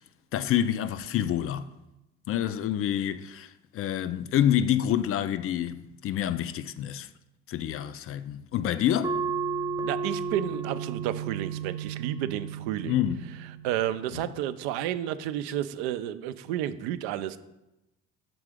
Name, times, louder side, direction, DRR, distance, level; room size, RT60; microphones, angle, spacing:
voice 1, 0.3-1.7 2.3-7.1 7.5-9.2 12.9-13.3 14.1-14.2, left 10 dB, 45° left, 0.4 m, -27 dB
sound 1, 9.0-14.1, right 5 dB, 10° right, 0.5 m, -33 dB
voice 2, 9.8-13.0 13.6-17.4, right 12 dB, 75° right, 0.5 m, -31 dB
6.1 x 3.7 x 4.9 m
hypercardioid pair, 60°, 32 cm